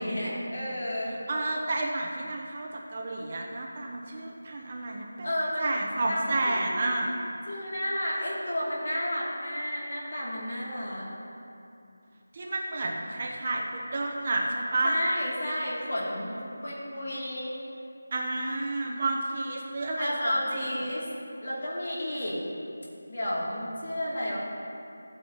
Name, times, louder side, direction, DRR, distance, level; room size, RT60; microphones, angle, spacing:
voice 1, 0.0-1.2 5.2-5.7 6.1-7.2 7.5-11.1 14.8-17.6 20.0-21.1 21.4-22.4 23.1-24.4, left 1 dB, 50° left, -5 dB, 2.6 m, -32 dB
voice 2, 1.3-5.3 5.6-7.1 12.3-15.0 18.1-20.7, right 2 dB, 30° right, -1 dB, 0.7 m, -30 dB
14.5 x 8.9 x 2.9 m, 2.7 s
figure-of-eight pair, 175°, 0 cm